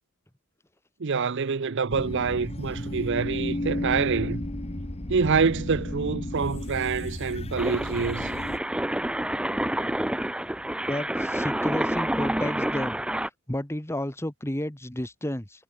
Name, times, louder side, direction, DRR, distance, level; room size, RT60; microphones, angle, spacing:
voice 1, 1.0-4.4 5.1-8.3, right 5 dB, 55° right, 0.6 m, -26 dB
sound 1, 1.9-8.6, left 1 dB, 25° left, 1.4 m, -33 dB
sound 2, 7.6-13.3, right 1 dB, 5° right, 0.4 m, -28 dB
voice 2, 10.6-13.0 13.5-15.6, left 1 dB, 10° left, 1.5 m, -32 dB
head